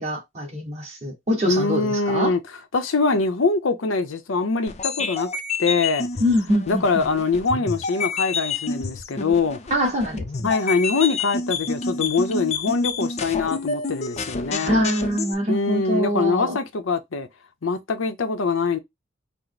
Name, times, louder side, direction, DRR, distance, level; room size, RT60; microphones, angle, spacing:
voice 1, 0.0-2.3 6.2-7.0 9.7-10.5 14.6-16.6, equal, 35° right, 1.5 m, -24 dB
voice 2, 1.5-2.4 2.7-5.3 5.6-6.1 6.7-9.6 10.4-14.8 15.5-17.3 17.6-18.8, left 4 dB, 85° left, 0.7 m, -23 dB
sound 1, 4.7-15.3, left 4 dB, 35° left, 0.5 m, -29 dB
4.5 x 2.1 x 4.0 m
head